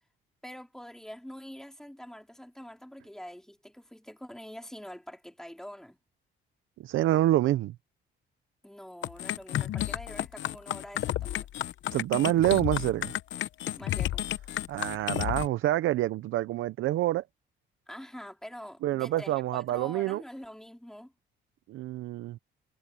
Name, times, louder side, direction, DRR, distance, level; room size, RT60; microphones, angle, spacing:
voice 1, 0.4-6.0 8.6-11.5 13.8-14.3 17.9-21.1, equal, 5° left, 4.0 m, -45 dB
voice 2, 6.8-7.8 11.9-13.1 14.7-17.2 18.8-20.2 21.7-22.4, right 14 dB, 85° right, 0.8 m, -27 dB
sound 1, 9.0-15.5, left 13 dB, 70° left, 0.9 m, -32 dB
cardioid pair, 90°, 20 cm